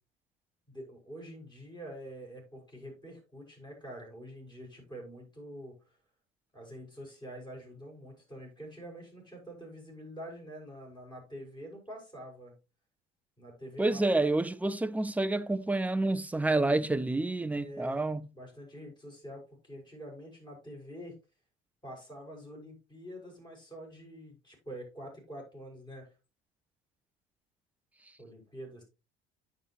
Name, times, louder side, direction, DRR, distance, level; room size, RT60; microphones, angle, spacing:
voice 1, 0.7-5.8 6.5-12.5 13.4-14.0 17.5-18.0 18.3-21.2 21.8-26.1 28.2-28.8, equal, 15° left, 6.1 m, -46 dB
voice 2, 13.8-18.3, right 2 dB, 5° right, 0.5 m, -28 dB
8.9 x 8.2 x 3.0 m
figure-of-eight pair, 60°, 31 cm